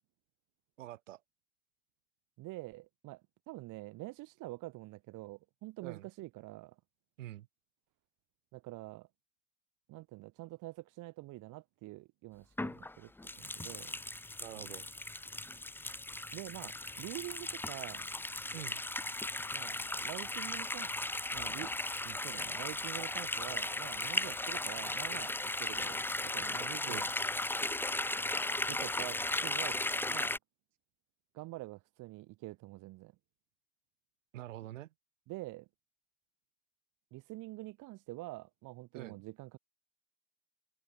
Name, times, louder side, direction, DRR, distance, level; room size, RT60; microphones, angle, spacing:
voice 1, 0.8-1.2 5.8-6.1 7.2-7.5 14.4-14.9 18.5-18.8 26.9-27.1 34.3-34.9 38.9-39.2, right 14 dB, 85° right, 5.3 m, -46 dB
voice 2, 2.4-3.2 3.5-6.7 8.5-9.1 9.9-13.1 13.4-13.9 16.3-18.1 19.5-20.9 21.3-21.7 22.0-25.3 25.6-27.0 28.7-29.8 30.1-30.4 31.3-33.1 35.3-35.7 37.1-39.6, right 19 dB, 55° right, 1.5 m, -46 dB
sound 1, 12.6-30.4, left 2 dB, 5° left, 0.9 m, -36 dB
hypercardioid pair, 85°, 37 cm